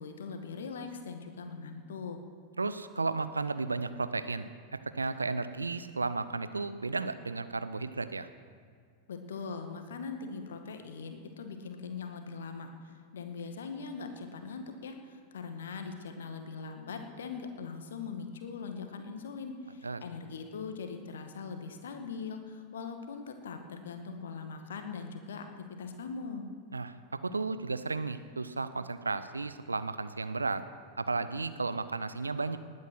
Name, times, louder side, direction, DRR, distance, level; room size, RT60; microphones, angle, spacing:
voice 1, 0.0-2.2 9.1-26.5, left 5 dB, 65° left, 6 dB, 1.8 m, -41 dB
voice 2, 2.6-4.5 4.9-8.3 19.8-20.0 26.7-26.9 27.2-30.6 31.0-32.6, right 3 dB, 80° right, 12 dB, 0.7 m, -33 dB
19.5 x 9.6 x 6.2 m, 2.2 s
figure-of-eight pair, 90°, 0 cm